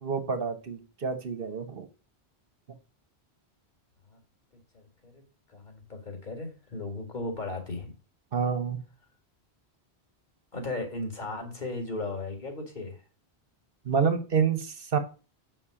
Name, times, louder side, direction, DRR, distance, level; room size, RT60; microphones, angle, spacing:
voice 1, 0.0-1.9 8.3-8.8 13.8-15.0, right 6 dB, 60° right, 8 dB, 1.2 m, -28 dB
voice 2, 4.7-5.2 5.5-7.9 10.5-13.0, left 2 dB, 45° left, 3 dB, 2.2 m, -36 dB
7.3 x 5.3 x 5.0 m, 0.34 s
omnidirectional pair, 1.1 m